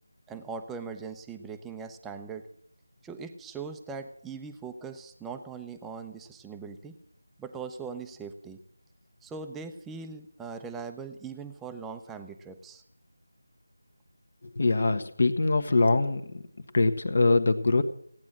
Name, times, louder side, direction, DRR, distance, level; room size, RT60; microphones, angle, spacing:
voice 1, 0.3-2.4 3.0-7.0 7.4-8.6 9.2-12.8, right 5 dB, 5° right, 6 dB, 0.7 m, -40 dB
voice 2, 14.5-16.4 16.7-17.8, left 3 dB, 45° left, 9 dB, 1.4 m, -23 dB
17.0 x 9.6 x 7.6 m, 0.66 s
figure-of-eight pair, 165°, 0 cm